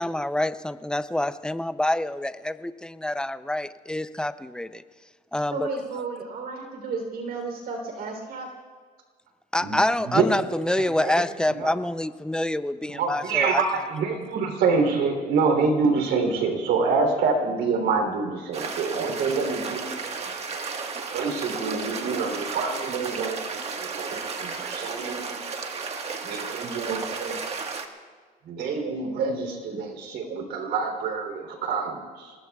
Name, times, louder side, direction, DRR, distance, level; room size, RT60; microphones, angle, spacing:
voice 1, 0.0-4.8 5.3-5.7 9.5-13.6, left 1 dB, 5° left, 12 dB, 0.6 m, -27 dB
voice 2, 5.5-8.5, right 4 dB, 65° right, 3 dB, 3.6 m, -33 dB
voice 3, 9.6-10.4 10.7-11.1 11.5-11.8 12.9-20.0 21.1-25.4 26.2-27.5 28.5-32.3, right 4 dB, 80° right, 4 dB, 3.4 m, -26 dB
sound 1, 18.5-27.9, right 4 dB, 40° right, 1.6 m, -33 dB
29.5 x 19.5 x 2.4 m, 1.5 s
cardioid pair, 110°, 17 cm